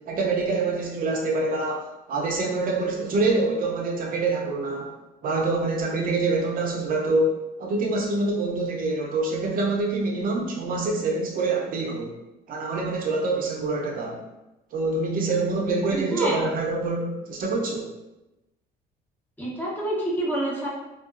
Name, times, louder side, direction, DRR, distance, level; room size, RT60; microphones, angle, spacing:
voice 1, 0.1-4.9 5.2-12.1 12.5-14.2 14.7-17.9, right 3 dB, 55° right, 0 dB, 0.5 m, -26 dB
voice 2, 15.9-16.4 19.4-20.7, right 1 dB, 10° left, -5 dB, 0.9 m, -27 dB
3.6 x 2.3 x 2.4 m, 0.99 s
cardioid pair, 110°, 17 cm